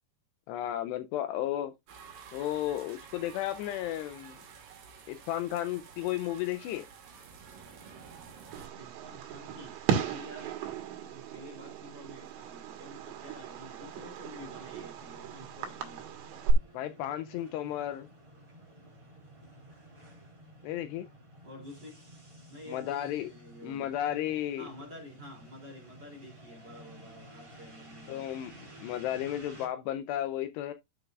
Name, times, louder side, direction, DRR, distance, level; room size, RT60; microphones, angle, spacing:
voice 1, 0.5-1.7 2.3-4.4 5.1-6.9 16.7-18.1 20.6-21.1 22.7-23.3 23.6-24.7 28.1-28.5 28.8-30.7, left 12 dB, 80° left, 2.6 m, -33 dB
sound 1, 1.9-8.7, right 6 dB, 55° right, 3.2 m, -50 dB
Fireworks, 8.5-16.5, right 8 dB, 75° right, 3.6 m, -35 dB
voice 2, 8.7-10.6 11.1-16.1 21.4-22.0 22.5-23.9 24.6-28.3, left 1 dB, 25° right, 2.9 m, -49 dB
sound 2, 14.4-29.7, right 1 dB, 10° right, 2.8 m, -53 dB
12.0 x 6.5 x 2.4 m
omnidirectional pair, 5.1 m